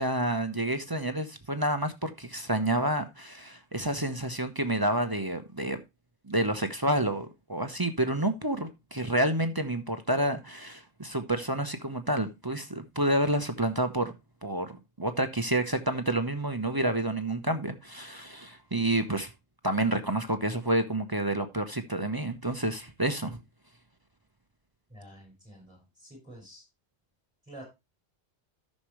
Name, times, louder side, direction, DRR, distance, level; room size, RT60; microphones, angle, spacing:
voice 1, 0.0-5.8 6.3-14.1 14.4-19.3 19.6-23.4, right 1 dB, 20° right, 0.8 m, -29 dB
voice 2, 24.9-26.6 27.4-27.6, right 1 dB, 5° right, 5.9 m, -49 dB
13.5 x 6.5 x 3.1 m
omnidirectional pair, 1.2 m